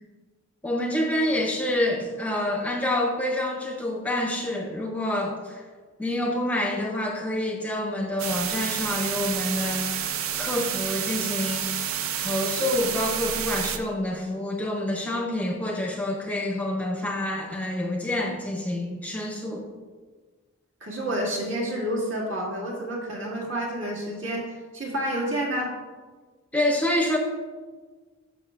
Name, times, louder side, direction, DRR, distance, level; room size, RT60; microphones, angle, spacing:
voice 1, 0.6-5.6 6.0-11.7 12.2-19.7 26.5-27.2, left 1 dB, 5° left, 1 dB, 0.6 m, -27 dB
sound 1, 8.2-13.8, right 9 dB, 80° right, 0.5 m, -29 dB
voice 2, 20.8-25.7, right 1 dB, 65° right, -3 dB, 1.9 m, -29 dB
11.0 x 6.1 x 2.4 m, 1.4 s
head